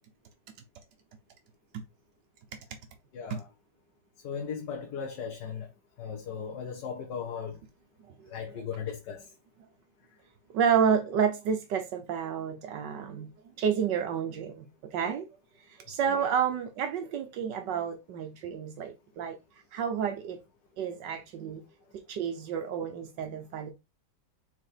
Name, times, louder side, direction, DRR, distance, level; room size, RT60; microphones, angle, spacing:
voice 1, 4.2-5.7 6.0-7.5 8.3-9.2, left 7 dB, 80° left, 1.6 m, -36 dB
voice 2, 10.5-13.3 13.6-15.3 15.8-19.4 19.7-20.4 20.8-21.6 22.1-23.7, right 7 dB, 85° right, 1.6 m, -30 dB
4.7 x 4.4 x 4.9 m
omnidirectional pair, 1.9 m